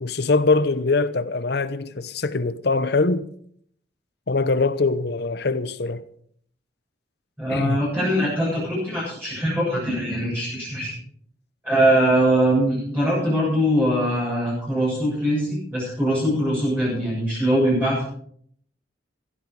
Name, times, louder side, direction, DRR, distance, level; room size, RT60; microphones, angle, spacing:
voice 1, 0.0-3.2 4.3-6.0 7.5-7.8, left 3 dB, 65° left, 0.9 m, -22 dB
voice 2, 7.4-11.0 11.6-18.0, right 1 dB, 10° right, 7.6 m, -22 dB
16.0 x 12.0 x 4.8 m
head